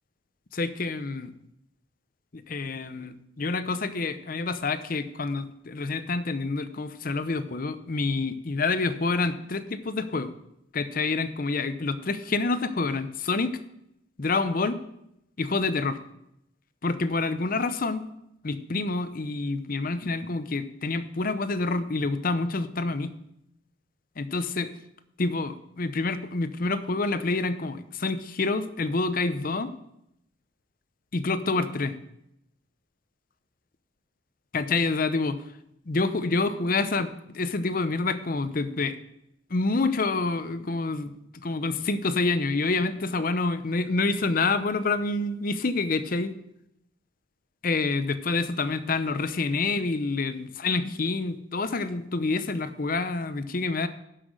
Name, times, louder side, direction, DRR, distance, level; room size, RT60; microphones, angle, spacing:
voice 1, 0.5-1.3 2.3-10.3 10.7-13.6 14.2-14.8 15.4-16.0 16.8-18.1 18.4-23.1 24.2-24.7 25.2-29.7 31.1-31.9 34.5-35.4 35.9-39.0 39.5-46.3 47.6-53.9, left 3 dB, 45° left, 12 dB, 0.7 m, -27 dB
11.5 x 5.9 x 6.5 m, 0.79 s
head